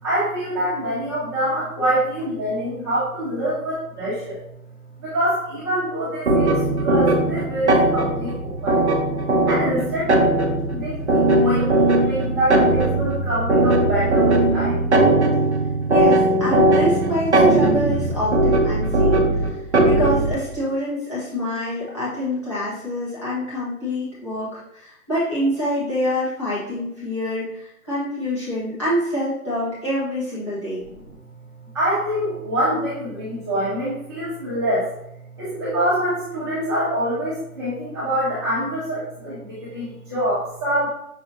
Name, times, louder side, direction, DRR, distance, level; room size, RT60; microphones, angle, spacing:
voice 1, 0.0-4.4 5.0-8.9 9.5-10.2 10.7-14.8 15.2-15.3 31.7-34.9 35.4-40.9, equal, 20° right, -14 dB, 1.0 m, -25 dB
sound 1, 6.3-20.4, right 2 dB, 50° right, 0.6 m, -19 dB
voice 2, 15.9-30.8, left 1 dB, 20° left, -10 dB, 1.2 m, -26 dB
5.9 x 2.7 x 2.6 m, 0.78 s
hypercardioid pair, 175°, 45 cm